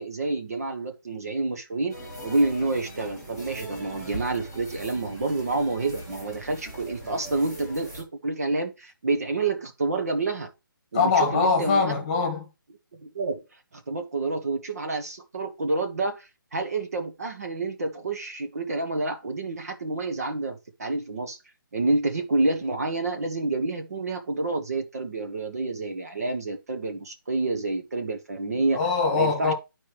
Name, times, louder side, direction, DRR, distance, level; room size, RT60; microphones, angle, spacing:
voice 1, 0.0-1.9 2.2-10.5 10.9-11.9 13.0-13.4 13.7-21.4 21.7-28.8 29.1-29.5, right 3 dB, 45° right, 1.1 m, -28 dB
sound 1, 1.9-8.0, right 1 dB, 15° right, 1.8 m, -40 dB
voice 2, 10.9-12.4 28.5-29.5, left 4 dB, 15° left, 1.6 m, -23 dB
11.5 x 4.5 x 3.1 m
hypercardioid pair, 175°, 11 cm